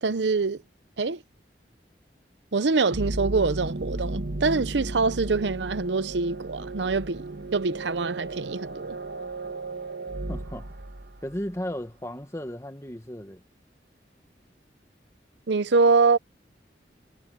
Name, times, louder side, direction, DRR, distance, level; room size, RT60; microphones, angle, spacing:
voice 1, 0.0-0.6 1.0-1.2 2.5-7.2 7.5-9.0 15.5-16.2, right 4 dB, 90° right, 0.8 m, -24 dB
sound 1, 2.9-11.5, right 2 dB, 65° right, 1.5 m, -35 dB
voice 2, 10.3-10.7 11.2-13.4, equal, 15° left, 1.6 m, -35 dB
head